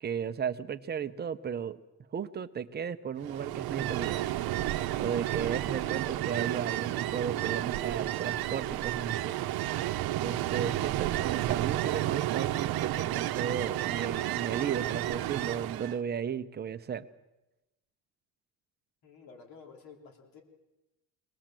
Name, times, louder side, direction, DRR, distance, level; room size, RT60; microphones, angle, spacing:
voice 1, 0.0-1.8 2.1-4.2 5.0-9.4 10.2-17.1, right 7 dB, 25° right, 10 dB, 0.7 m, -35 dB
Ocean, 3.2-16.0, right 14 dB, 70° right, 0.9 m, -31 dB
voice 2, 5.0-5.3 19.0-20.4, left 5 dB, 70° left, 3 dB, 3.6 m, -54 dB
24.0 x 19.0 x 7.6 m, 1.0 s
cardioid pair, 170°, 37 cm